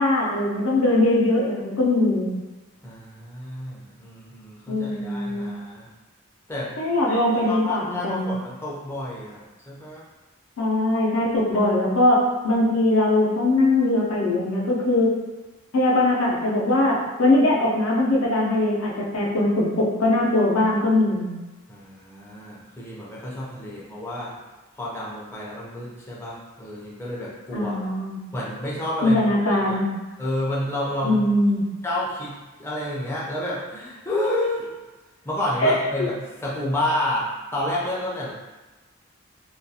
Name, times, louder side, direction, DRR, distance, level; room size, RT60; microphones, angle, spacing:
voice 1, 0.0-2.3 4.7-5.5 6.8-8.3 10.6-15.1 15.7-21.4 27.5-28.2 29.0-29.9 31.0-31.6 35.6-35.8, left 1 dB, 85° left, -3 dB, 0.6 m, -21 dB
voice 2, 2.8-5.9 6.5-6.7 7.1-10.0 21.7-24.4 24.8-27.9 28.3-29.8 30.2-31.2 31.8-32.3 32.6-34.7 35.2-36.1 36.4-38.3, left 1 dB, 10° left, -6 dB, 0.4 m, -30 dB
2.3 x 2.2 x 2.7 m, 1.2 s
head